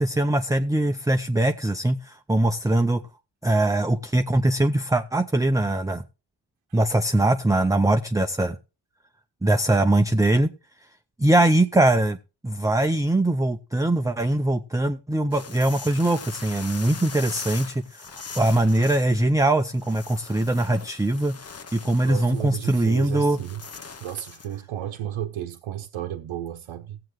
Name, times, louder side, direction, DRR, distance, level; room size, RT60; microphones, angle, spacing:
voice 1, 0.0-3.0 3.4-6.0 6.7-8.6 9.4-10.5 11.2-12.2 12.4-18.1 18.4-21.4 21.7-23.4, right 1 dB, 5° right, 0.5 m, -22 dB
sound 1, 15.3-24.6, left 5 dB, 30° left, 0.9 m, -41 dB
voice 2, 22.0-23.6 23.9-27.0, right 11 dB, 80° right, 0.9 m, -33 dB
15.5 x 7.7 x 3.1 m
cardioid pair, 70°, 48 cm